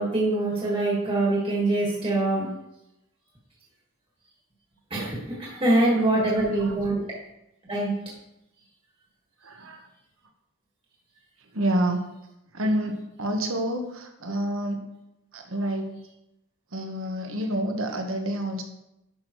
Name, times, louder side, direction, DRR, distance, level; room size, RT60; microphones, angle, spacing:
voice 1, 0.0-2.5 4.9-7.0 7.7-7.9, right 2 dB, 25° right, -5 dB, 1.7 m, -24 dB
voice 2, 6.3-6.8 9.4-9.9 11.5-12.1 12.5-14.9 15.3-15.9 16.7-18.6, right 1 dB, 65° right, 5 dB, 1.2 m, -28 dB
10.5 x 6.2 x 3.1 m, 0.88 s
head